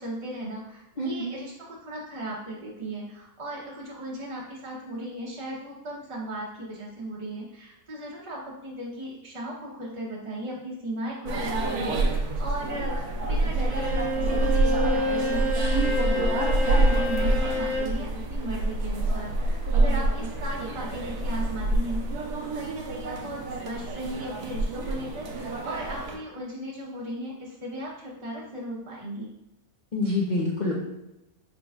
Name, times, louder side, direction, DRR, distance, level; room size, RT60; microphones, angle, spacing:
voice 1, 0.0-22.0 22.4-29.3, right 1 dB, 35° right, -5 dB, 0.5 m, -37 dB
voice 2, 1.0-1.4 29.9-30.8, left 2 dB, 65° left, -5 dB, 0.4 m, -26 dB
sound 1, 11.3-26.2, right 2 dB, 80° right, 1.1 m, -27 dB
Bowed string instrument, 13.7-18.0, left 1 dB, 25° left, 1.0 m, -29 dB
5.1 x 3.8 x 2.3 m, 0.90 s
omnidirectional pair, 1.6 m